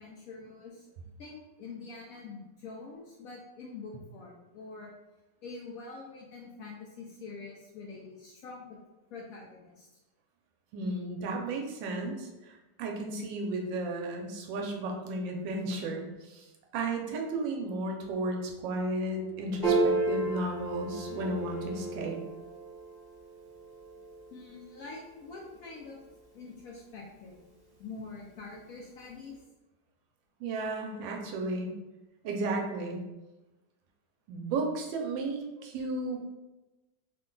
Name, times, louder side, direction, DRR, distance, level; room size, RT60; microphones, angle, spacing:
voice 1, 0.0-4.9 5.4-8.8 9.1-9.9 24.3-26.0 26.3-27.4 27.8-29.4, left 4 dB, 70° left, -2 dB, 0.8 m, -45 dB
voice 2, 10.7-16.5 16.7-22.2 30.4-31.7 32.2-33.0 34.3-36.3, right 2 dB, 85° right, 1 dB, 1.4 m, -34 dB
Bowed string instrument, 18.4-22.1, left 6 dB, 10° right, 1.0 m, -45 dB
Piano, 19.6-26.3, right 3 dB, 25° right, 0.4 m, -34 dB
3.4 x 2.2 x 3.7 m, 1.1 s
omnidirectional pair, 1.9 m